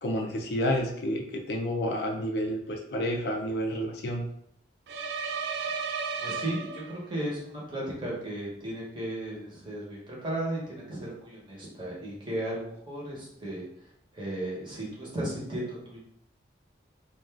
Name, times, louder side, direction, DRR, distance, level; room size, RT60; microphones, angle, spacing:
voice 1, 0.0-4.2, equal, 60° left, 0 dB, 0.4 m, -30 dB
sound 1, 4.9-7.2, right 5 dB, 65° right, 0.3 m, -34 dB
voice 2, 6.2-13.6 14.1-16.0, right 1 dB, 25° right, -5 dB, 0.9 m, -35 dB
2.4 x 2.3 x 3.3 m, 0.71 s
head